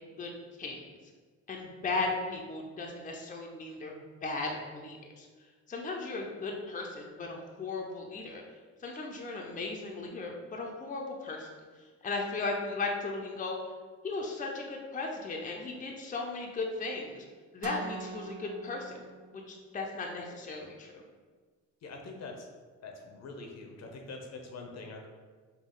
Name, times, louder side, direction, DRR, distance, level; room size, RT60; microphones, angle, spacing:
voice 1, 1.5-5.3 5.7-8.4 8.8-11.5 12.0-13.6 14.0-17.3 17.5-19.0 19.3-21.0, left 3 dB, 25° left, 0 dB, 0.6 m, -36 dB
sound 1, 17.6-19.7, right 5 dB, 55° right, 0.6 m, -43 dB
voice 2, 21.8-22.5 22.8-25.1, left 3 dB, 60° left, 2 dB, 0.8 m, -44 dB
5.2 x 2.3 x 3.8 m, 1.5 s
cardioid pair, 90°, 30 cm